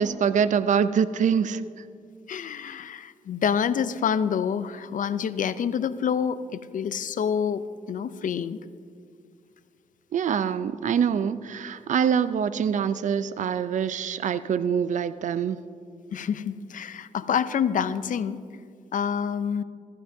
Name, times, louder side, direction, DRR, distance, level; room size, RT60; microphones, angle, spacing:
voice 1, 0.0-1.6 10.1-15.6, right 7 dB, 60° right, 14 dB, 0.4 m, -24 dB
voice 2, 2.3-8.6 16.1-18.4 18.9-19.6, left 7 dB, 65° left, 14 dB, 0.5 m, -27 dB
15.0 x 14.5 x 2.7 m, 2.2 s
cardioid pair, 80°, 14 cm